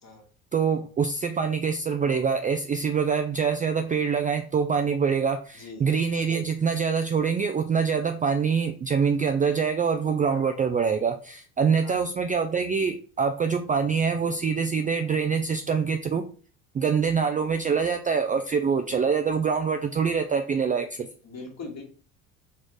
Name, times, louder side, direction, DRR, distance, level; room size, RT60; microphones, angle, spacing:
voice 1, 0.5-16.2 16.7-21.1, right 6 dB, 20° right, 7 dB, 0.3 m, -25 dB
voice 2, 5.5-5.9 11.8-12.0 21.2-21.8, left 3 dB, 40° left, 0 dB, 1.8 m, -40 dB
4.3 x 2.4 x 4.7 m, 0.40 s
hypercardioid pair, 75°, 42 cm